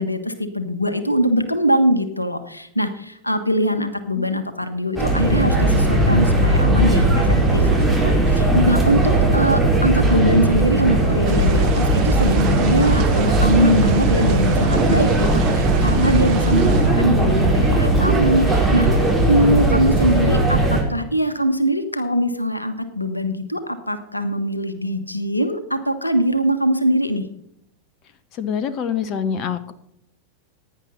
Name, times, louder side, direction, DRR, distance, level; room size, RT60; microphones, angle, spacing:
voice 1, 0.0-18.9 19.3-27.3, equal, 85° left, 10 dB, 1.3 m, -22 dB
sound 1, 5.0-20.8, right 2 dB, ahead, 4.5 m, -18 dB
sound 2, 11.2-16.9, right 10 dB, 45° right, 1.7 m, -33 dB
voice 2, 28.4-29.7, left 7 dB, 40° left, 13 dB, 1.1 m, -25 dB
16.0 x 10.0 x 4.0 m, 0.76 s
figure-of-eight pair, 90°, 0 cm